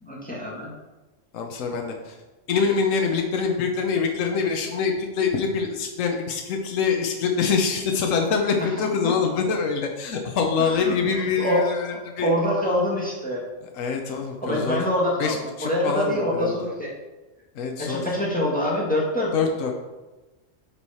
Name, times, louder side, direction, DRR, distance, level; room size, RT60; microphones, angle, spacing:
voice 1, 0.0-0.7 8.6-8.7 9.0-9.1 10.6-10.9 11.4-11.6 12.2-13.4 14.1-16.9 17.8-19.3, left 1 dB, 5° left, -4 dB, 1.6 m, -25 dB
voice 2, 1.3-2.1 2.5-12.3 13.7-14.8 15.2-16.6 17.5-18.0 19.3-19.7, left 5 dB, 75° left, 3 dB, 1.2 m, -25 dB
8.6 x 4.8 x 4.2 m, 1.1 s
omnidirectional pair, 1.4 m